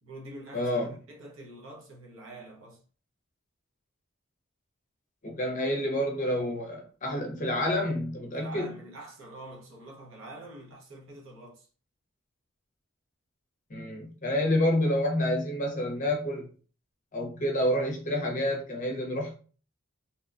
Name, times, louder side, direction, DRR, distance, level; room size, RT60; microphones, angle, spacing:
voice 1, 0.0-2.8 8.3-11.7, right 2 dB, 70° right, 0.8 m, -46 dB
voice 2, 0.5-0.9 5.2-8.7 13.7-16.5 17.1-19.3, left 1 dB, 35° left, 0.6 m, -28 dB
2.8 x 2.2 x 2.4 m
head